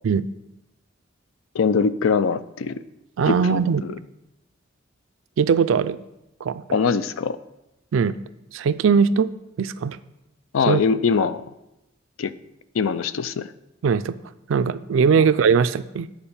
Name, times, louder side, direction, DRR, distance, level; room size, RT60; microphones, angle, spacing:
voice 1, 1.5-2.8 3.3-3.6 6.7-7.4 10.5-11.4 12.2-12.3 12.7-13.5 15.2-15.3, left 5 dB, 80° left, 14 dB, 0.4 m, -22 dB
voice 2, 3.2-3.8 5.4-6.0 6.4-6.6 7.9-8.2 8.5-9.3 9.6-10.0 10.7-10.8 13.8-14.2 14.5-16.1, right 6 dB, 70° right, 14 dB, 0.4 m, -20 dB
8.8 x 4.7 x 5.5 m, 0.91 s
head